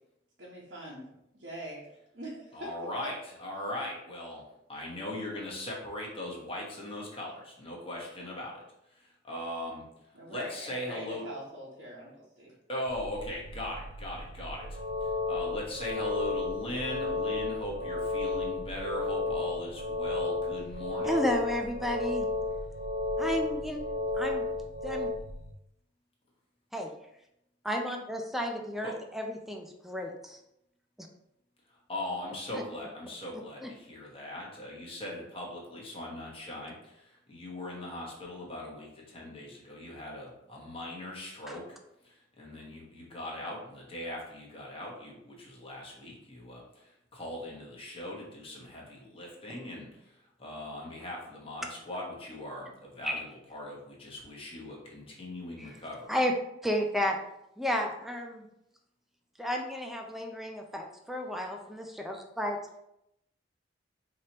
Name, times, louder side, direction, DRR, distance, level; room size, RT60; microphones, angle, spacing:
voice 1, 0.4-1.0 1.3-1.9 2.1-2.7 10.1-12.5, right 1 dB, 65° right, -6 dB, 0.9 m, -43 dB
voice 2, 2.5-4.4 4.7-8.6 8.9-9.8 10.3-11.3 12.7-21.1 28.8-29.0 31.9-41.8 42.0-53.2 53.5-56.1, left 1 dB, 30° left, -3 dB, 1.1 m, -39 dB
sound 1, 12.9-25.5, right 1 dB, 65° left, 0.5 m, -46 dB
sound 2, 14.6-25.1, left 3 dB, 85° left, 1.1 m, -33 dB
voice 3, 21.0-22.3 23.2-23.8 24.2-24.4 24.8-25.1 26.7-26.9 27.6-30.4 31.0-31.1 32.5-32.6 33.6-33.7 41.5-41.6 53.0-53.1 55.6-55.7 56.1-56.3 56.6-57.2 57.6-58.5 59.4-62.6, equal, ahead, 2 dB, 0.4 m, -32 dB
4.7 x 3.0 x 2.9 m, 0.82 s
head